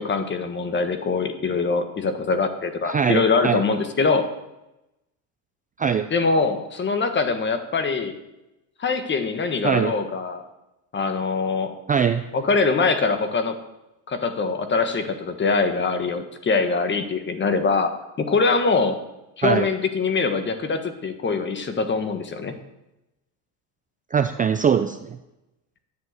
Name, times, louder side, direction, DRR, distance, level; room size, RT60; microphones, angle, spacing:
voice 1, 0.0-4.3 6.1-8.1 8.8-10.4 10.9-11.7 12.3-13.6 14.1-19.0 19.4-22.5, left 4 dB, 25° left, 8 dB, 1.5 m, -23 dB
voice 2, 2.8-3.6 5.8-6.1 9.6-9.9 11.9-12.2 19.4-19.7 24.1-25.2, right 7 dB, 20° right, 9 dB, 0.5 m, -21 dB
10.5 x 7.4 x 8.0 m, 0.94 s
cardioid pair, 120°, 41 cm